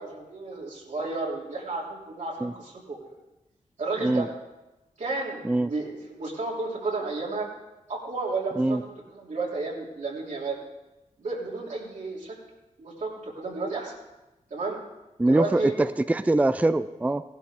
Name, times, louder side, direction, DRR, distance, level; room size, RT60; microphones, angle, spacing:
voice 1, 0.0-3.1 3.8-4.3 5.0-7.5 7.9-8.8 9.1-10.6 11.2-12.3 12.8-13.9 14.5-14.8 15.3-16.0, right 3 dB, 70° right, -4 dB, 3.3 m, -32 dB
voice 2, 15.2-17.2, right 2 dB, 10° right, 12 dB, 0.4 m, -23 dB
16.5 x 11.5 x 3.7 m, 1.0 s
wide cardioid pair, 80°, 13 cm